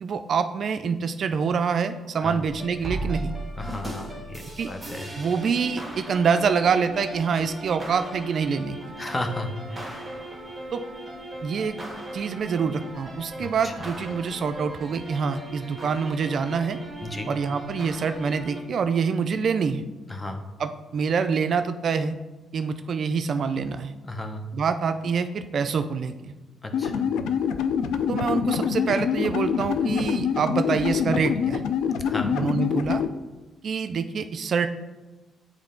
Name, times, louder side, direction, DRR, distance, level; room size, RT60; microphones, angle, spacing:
voice 1, 0.0-3.3 4.6-4.7 5.2-8.9 10.7-10.8 11.4-11.8 12.1-16.8 17.3-19.8 20.6-22.1 22.5-23.9 24.5-26.3 28.1-31.6 32.3-33.0 33.6-34.7, right 6 dB, 55° right, 9 dB, 0.3 m, -26 dB
sound 1, 2.4-18.6, right 1 dB, 15° right, 1.5 m, -37 dB
voice 2, 3.6-5.1 9.0-10.2 13.4-13.9 17.0-17.3 20.1-20.4 24.1-24.5 26.6-27.1 32.0-32.4, left 1 dB, 20° left, 5 dB, 0.8 m, -34 dB
sound 2, 26.7-33.1, left 7 dB, 85° left, 0.3 m, -25 dB
8.4 x 3.2 x 3.7 m, 1.1 s
cardioid pair, 90°, 0 cm